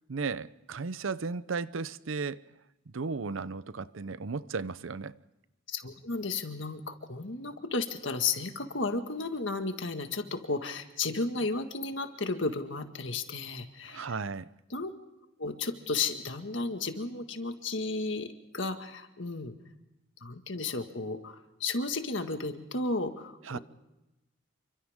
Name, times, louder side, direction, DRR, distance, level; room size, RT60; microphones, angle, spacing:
voice 1, 0.1-2.4 2.9-5.2 13.9-14.5 23.5-23.6, right 4 dB, 80° right, 0.7 m, -35 dB
voice 2, 5.7-14.2 14.7-14.9 15.4-19.5 20.2-23.6, left 3 dB, 65° left, 1.8 m, -33 dB
28.5 x 24.5 x 3.6 m
head